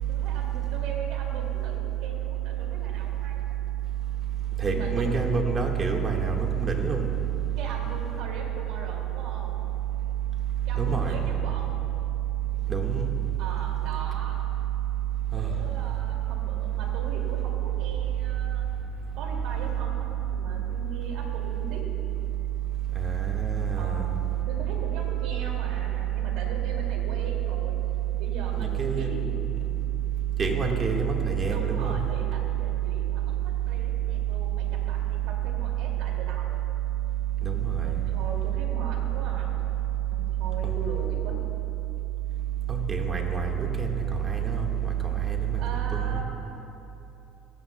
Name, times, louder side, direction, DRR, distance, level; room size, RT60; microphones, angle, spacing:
voice 1, 0.1-3.6 4.6-5.3 7.6-9.6 10.6-11.8 13.4-14.4 15.3-18.6 19.2-21.8 23.8-27.8 28.2-29.3 31.4-36.6 37.8-39.6 40.1-41.4 45.6-46.2, right 3 dB, 75° right, -1 dB, 2.4 m, -40 dB
voice 2, 4.6-7.1 10.8-11.2 12.7-13.1 15.3-15.5 22.9-24.1 28.6-29.3 30.4-32.0 37.4-37.9 40.6-40.7 42.7-45.6 45.9-46.2, right 6 dB, 30° right, 1 dB, 1.6 m, -27 dB
21.5 x 10.0 x 2.3 m, 2.9 s
supercardioid pair, 95°, 0 cm